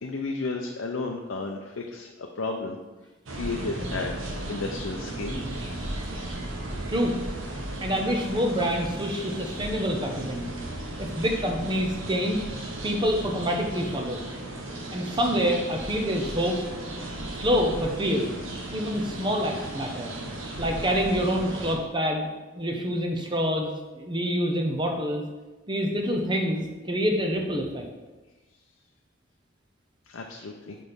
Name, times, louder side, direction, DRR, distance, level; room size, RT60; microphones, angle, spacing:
voice 1, 0.0-2.8 3.3-4.1 4.5-5.4 30.1-30.8, left 3 dB, 75° left, 1 dB, 0.6 m, -33 dB
sound 1, 3.3-21.8, right 1 dB, 80° right, 1.2 m, -35 dB
voice 2, 7.8-10.5 11.0-12.4 12.8-14.2 14.9-16.6 17.4-18.3 18.7-20.1 20.6-22.3 22.5-25.2 25.7-27.8, equal, 25° right, 2 dB, 0.8 m, -26 dB
6.3 x 4.2 x 5.0 m, 1.2 s
head